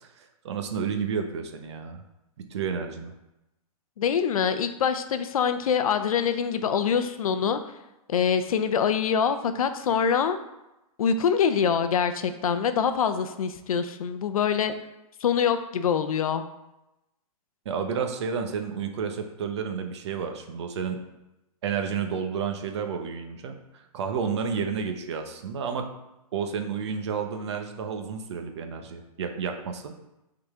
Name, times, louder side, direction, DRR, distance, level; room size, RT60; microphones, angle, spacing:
voice 1, 0.0-2.0 2.5-3.1 17.6-21.0 21.6-23.6 23.9-25.9 26.3-29.9, right 6 dB, 50° right, 6 dB, 0.9 m, -31 dB
voice 2, 4.0-7.6 8.1-10.4 11.0-14.7 15.2-16.4, left 7 dB, 70° left, 10 dB, 0.6 m, -24 dB
8.4 x 3.9 x 3.6 m, 0.93 s
hypercardioid pair, 170°, 19 cm